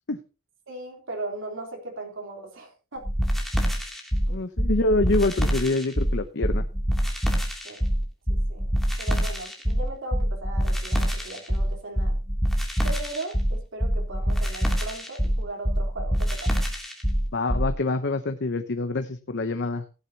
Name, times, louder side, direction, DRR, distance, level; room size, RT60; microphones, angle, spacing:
voice 1, 0.7-3.1 4.3-4.4 7.6-7.9 8.3-8.7 9.0-12.2 12.8-16.6, right 2 dB, 65° right, 1 dB, 3.6 m, -37 dB
sound 1, 3.0-17.7, equal, ahead, 2.8 m, -25 dB
voice 2, 4.3-6.7 17.3-19.8, left 2 dB, 55° left, 8 dB, 0.9 m, -26 dB
15.5 x 10.5 x 2.9 m, 0.31 s
head